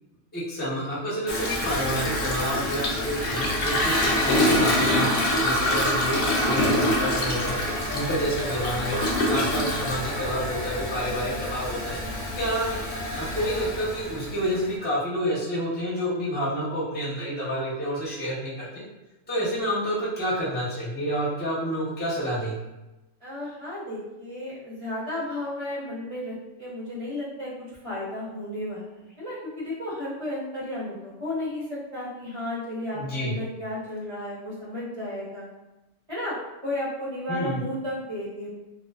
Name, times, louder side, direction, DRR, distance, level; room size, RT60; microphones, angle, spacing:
voice 1, 0.3-7.6 7.9-8.9 9.3-12.0 12.3-12.8 13.1-18.8 19.3-22.6 32.9-33.4 37.3-37.6, equal, 10° left, -7 dB, 0.4 m, -29 dB
Toilet flush, 1.3-14.7, left 1 dB, 65° left, 0.6 m, -26 dB
voice 2, 23.2-35.5 36.1-36.3 36.6-38.5, left 1 dB, 35° right, -8 dB, 0.6 m, -33 dB
2.3 x 2.3 x 2.3 m, 1.0 s
omnidirectional pair, 1.5 m